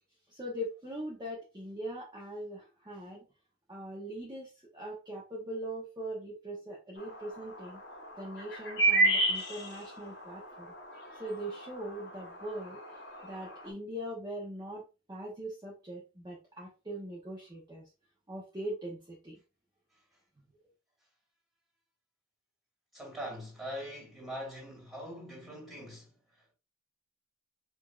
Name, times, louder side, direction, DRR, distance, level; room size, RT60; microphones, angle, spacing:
voice 1, 0.3-3.2 3.7-7.8 8.2-10.7 11.2-14.8 15.1-17.9 18.3-19.4, right 1 dB, 20° right, 0.8 m, -41 dB
sound 1, 7.0-13.7, right 2 dB, 55° left, 1.0 m, -33 dB
voice 2, 22.9-26.1, equal, ahead, 2.1 m, -42 dB
5.0 x 2.6 x 2.3 m
head